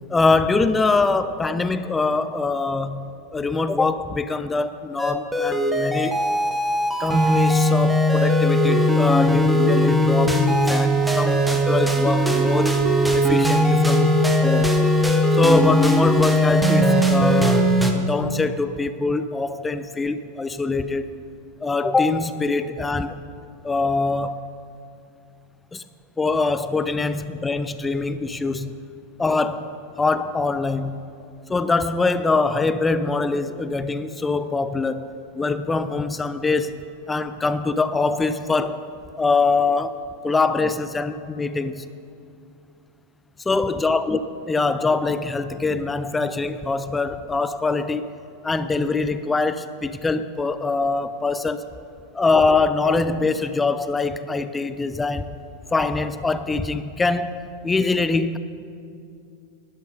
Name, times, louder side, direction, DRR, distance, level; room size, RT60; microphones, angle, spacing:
voice 1, 0.0-6.2 7.0-12.8 13.1-14.7 15.3-21.2 21.6-23.2 23.6-24.4 25.7-25.8 26.2-28.8 29.2-31.0 31.5-35.1 35.4-38.8 39.2-41.8 43.5-44.2 44.5-48.1 48.4-51.6 52.1-55.3 55.7-58.4, left 3 dB, 10° left, 12 dB, 0.4 m, -23 dB
sound 1, 5.0-17.9, equal, 5° right, 1.1 m, -19 dB
12.0 x 11.0 x 5.3 m, 2.5 s
figure-of-eight pair, 90°, 0 cm